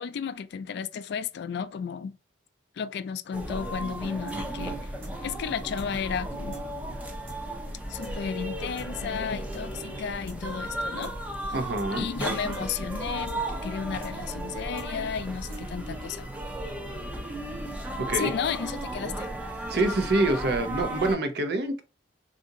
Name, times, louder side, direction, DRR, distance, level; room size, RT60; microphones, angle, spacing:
voice 1, 0.0-2.2 2.8-4.9 5.2-6.6 7.9-11.1 11.9-16.3 18.1-19.3, left 7 dB, 60° left, 0.3 m, -33 dB
sound 1, 3.3-21.2, right 1 dB, 5° right, 0.5 m, -35 dB
sound 2, 4.3-9.6 9.9-10.0 10.3-16.0, right 1 dB, 80° right, 1.2 m, -50 dB
voice 2, 11.5-12.1 18.0-18.3 19.7-21.8, right 2 dB, 60° right, 0.6 m, -26 dB
2.7 x 2.5 x 3.7 m
head